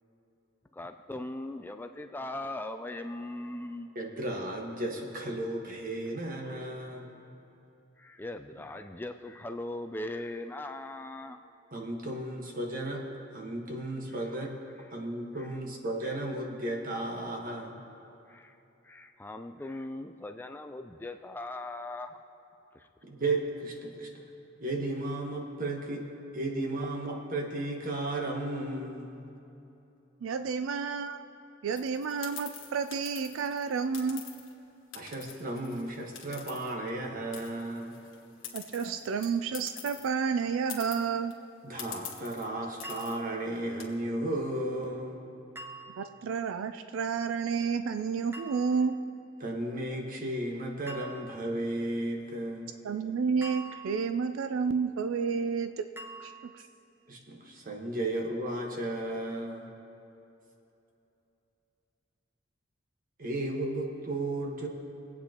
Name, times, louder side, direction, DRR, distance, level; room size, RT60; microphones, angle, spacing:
voice 1, 0.7-3.9 8.0-11.4 14.1-14.3 15.4-15.5 18.3-18.5 18.8-22.2 22.7-22.9, left 2 dB, 10° left, 7 dB, 0.3 m, -39 dB
voice 2, 3.9-7.1 11.7-13.0 13.3-14.5 14.9-17.8 23.0-24.1 24.6-26.0 26.3-29.2 34.9-38.0 38.8-38.9 41.6-45.2 49.4-52.7 57.1-59.7 63.2-64.7, right 1 dB, 45° right, 1 dB, 1.3 m, -34 dB
voice 3, 30.2-31.2 31.6-34.2 38.5-41.3 46.0-49.0 52.8-55.9 56.2-56.6, right 5 dB, 80° right, 10 dB, 0.4 m, -30 dB
sound 1, 31.7-34.5 34.9-37.1 37.3-40.1 40.4-40.5 40.7-41.3 41.8-42.5 42.8-43.2 43.6-43.8, left 9 dB, 85° left, 1.5 m, -45 dB
sound 2, 42.8-43.5 45.5-46.3 48.3-49.0 50.9-51.5 53.4-54.3 56.0-56.7, right 2 dB, 10° right, 0.9 m, -45 dB
22.5 x 8.5 x 2.9 m, 2.9 s
head